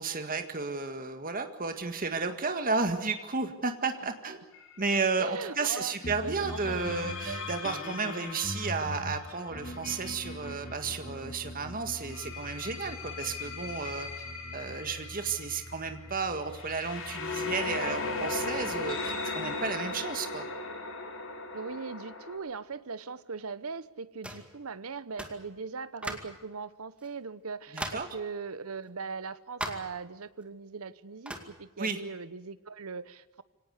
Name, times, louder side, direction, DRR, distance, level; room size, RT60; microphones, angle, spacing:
voice 1, 0.0-4.4 4.8-14.1 14.5-20.5 27.7-28.1 31.8-32.0, right 4 dB, 40° right, 7 dB, 1.8 m, -33 dB
sound 1, 4.5-4.8 6.3-11.1 11.9-22.4, left 3 dB, 60° left, 4.3 m, -38 dB
voice 2, 5.2-6.0 6.2-6.8 7.2-7.5 21.5-33.4, right 4 dB, 80° right, 16 dB, 1.0 m, -39 dB
sound 2, 6.0-20.7, left 1 dB, 35° left, 2.6 m, -43 dB
sound 3, 24.2-24.5 25.2-25.4 26.0-26.4 27.0-27.1 27.8-28.1 29.6-30.0 31.3-31.5, right 1 dB, 5° right, 2.2 m, -38 dB
24.5 x 18.0 x 8.2 m, 1.2 s
head